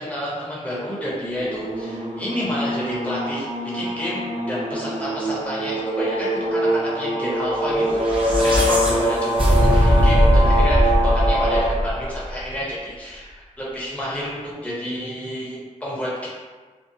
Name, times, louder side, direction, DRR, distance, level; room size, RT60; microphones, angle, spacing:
voice 1, 0.0-3.5 3.7-16.3, left 1 dB, 10° left, -8 dB, 0.9 m, -30 dB
sound 1, 1.3-11.6, right 1 dB, 85° right, 0.8 m, -24 dB
sound 2, 7.8-12.2, equal, 40° right, 0.7 m, -19 dB
2.6 x 2.3 x 2.7 m, 1.4 s
wide cardioid pair, 120°, 13 cm